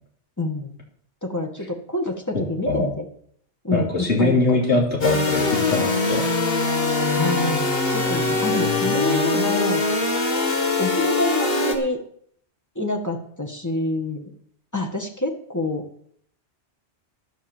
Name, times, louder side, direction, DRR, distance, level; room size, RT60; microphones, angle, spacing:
voice 1, 0.4-0.8 1.2-3.0 3.6-4.6 7.2-9.9 10.8-12.0 12.8-14.3 14.7-15.8, left 2 dB, 15° left, 2 dB, 1.9 m, -27 dB
voice 2, 2.3-2.9 3.7-6.3, left 2 dB, 75° left, -2 dB, 3.4 m, -22 dB
sound 1, 5.0-11.8, left 3 dB, 55° left, 1.8 m, -22 dB
11.5 x 8.7 x 7.3 m, 0.65 s
omnidirectional pair, 1.2 m